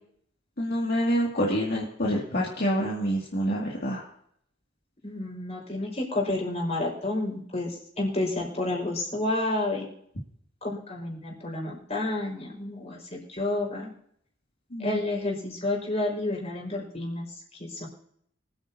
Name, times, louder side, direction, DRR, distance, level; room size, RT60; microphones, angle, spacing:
voice 1, 0.6-4.0 14.7-15.0, equal, 55° left, -4 dB, 2.4 m, -27 dB
voice 2, 5.0-9.9 10.6-13.9 14.8-17.3 17.6-17.9, left 2 dB, 35° left, -1 dB, 4.9 m, -30 dB
25.0 x 9.0 x 2.8 m, 0.69 s
head